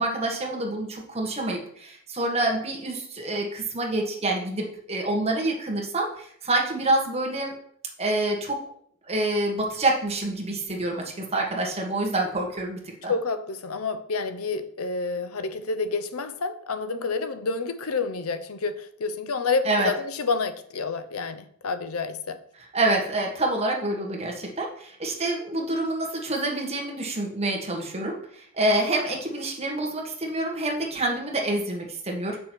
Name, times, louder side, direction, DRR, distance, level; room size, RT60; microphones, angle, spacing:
voice 1, 0.0-7.5 8.0-8.6 9.1-13.1 19.6-19.9 22.7-32.5, right 2 dB, 30° right, 1.6 m, -27 dB
voice 2, 13.1-22.4, left 4 dB, 85° left, 0.7 m, -29 dB
7.7 x 6.2 x 4.5 m
head